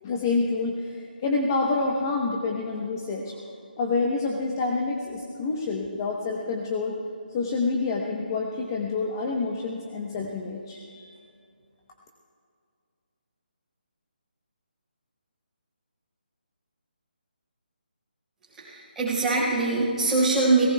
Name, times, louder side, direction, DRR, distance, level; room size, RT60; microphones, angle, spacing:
voice 1, 0.0-3.4 3.8-7.0 7.3-11.1, left 3 dB, 20° left, 0 dB, 0.9 m, -28 dB
voice 2, 18.6-20.7, right 3 dB, 5° right, -11 dB, 4.5 m, -23 dB
28.5 x 18.0 x 2.3 m, 2.4 s
hypercardioid pair, 170°, 5 cm